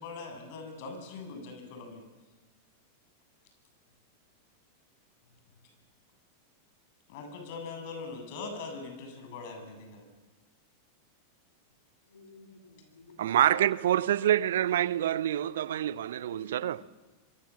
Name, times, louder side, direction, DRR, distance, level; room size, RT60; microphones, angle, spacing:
voice 1, 0.0-2.0 7.1-10.1, left 4 dB, 50° left, 7.7 m, -41 dB
voice 2, 12.1-13.4 15.8-15.9 16.3-16.8, left 4 dB, 75° left, 2.8 m, -53 dB
voice 3, 13.2-16.8, right 11 dB, 65° right, 0.8 m, -26 dB
25.5 x 23.5 x 7.4 m
figure-of-eight pair, 90°, 0 cm